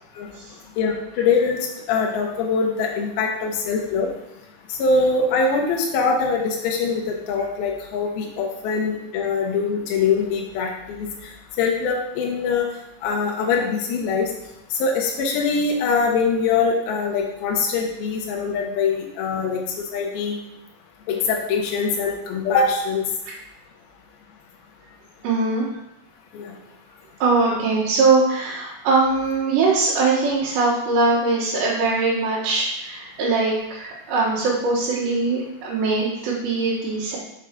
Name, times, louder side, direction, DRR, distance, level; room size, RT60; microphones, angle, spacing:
voice 1, 0.8-4.1 4.7-11.3 11.6-12.7 13.0-14.3 14.7-20.4 21.1-23.0 26.3-26.5, left 4 dB, 75° left, -1 dB, 2.4 m, -23 dB
voice 2, 25.2-25.7 27.2-37.2, right 3 dB, 80° right, -8 dB, 3.6 m, -21 dB
6.7 x 5.3 x 3.6 m, 0.85 s
omnidirectional pair, 4.9 m